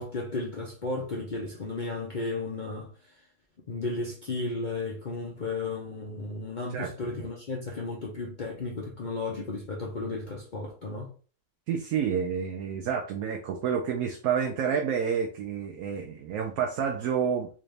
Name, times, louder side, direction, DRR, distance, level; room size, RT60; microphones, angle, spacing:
voice 1, 0.0-2.9 3.7-11.1, left 3 dB, 45° left, 0.6 m, -34 dB
voice 2, 11.7-17.5, right 7 dB, 75° right, 1.0 m, -29 dB
3.9 x 2.6 x 3.2 m
omnidirectional pair, 1.7 m